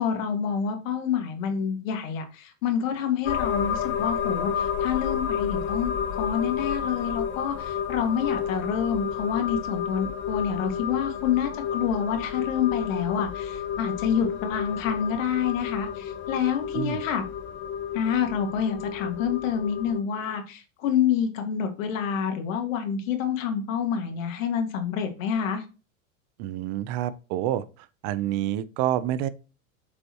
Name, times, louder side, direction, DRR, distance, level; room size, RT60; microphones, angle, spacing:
voice 1, 0.0-17.2 17.9-25.6, left 7 dB, 75° left, 2.1 m, -28 dB
sound 1, 3.2-20.0, left 8 dB, 30° left, 0.8 m, -31 dB
voice 2, 26.4-27.6 28.0-29.3, right 12 dB, 50° right, 0.7 m, -28 dB
8.1 x 5.4 x 3.0 m
supercardioid pair, 120°, 39 cm